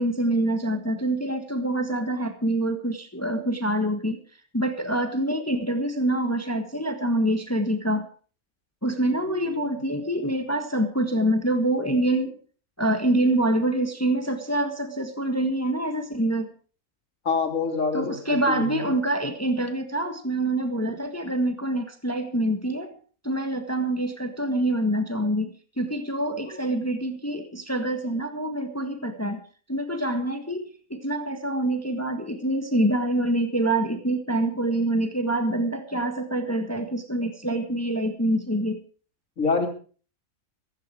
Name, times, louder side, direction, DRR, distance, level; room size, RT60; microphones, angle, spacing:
voice 1, 0.0-4.2 4.5-8.1 8.8-12.3 12.8-16.5 17.9-22.9 23.2-29.4 29.7-38.8, right 1 dB, 10° left, 7 dB, 1.4 m, -26 dB
voice 2, 9.2-9.5 17.3-18.9 39.4-39.7, left 4 dB, 60° left, 4 dB, 3.4 m, -26 dB
15.5 x 15.0 x 4.9 m, 0.41 s
omnidirectional pair, 1.6 m